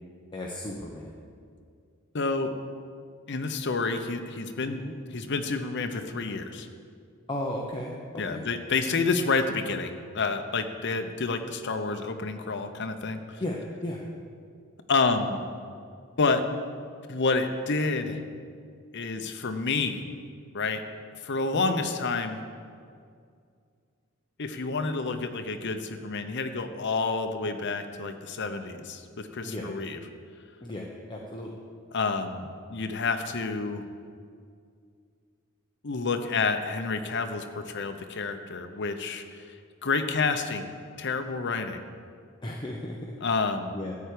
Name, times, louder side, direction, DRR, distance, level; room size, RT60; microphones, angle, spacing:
voice 1, 0.3-1.1 4.7-4.9 7.3-7.9 8.3-8.4 13.4-14.0 21.5-21.8 29.4-29.7 30.6-31.5 42.4-43.1 43.7-44.0, left 1 dB, 20° left, -1 dB, 0.9 m, -35 dB
voice 2, 2.1-2.5 3.3-4.8 5.1-6.7 8.2-13.4 14.9-15.4 16.2-16.4 17.1-18.2 18.9-20.0 20.5-20.8 21.2-22.4 24.4-30.0 31.9-33.8 35.8-39.5 39.8-40.7 41.0-41.8 43.2-43.8, left 4 dB, 60° left, 7 dB, 0.8 m, -29 dB
13.0 x 4.6 x 8.5 m, 2.2 s
head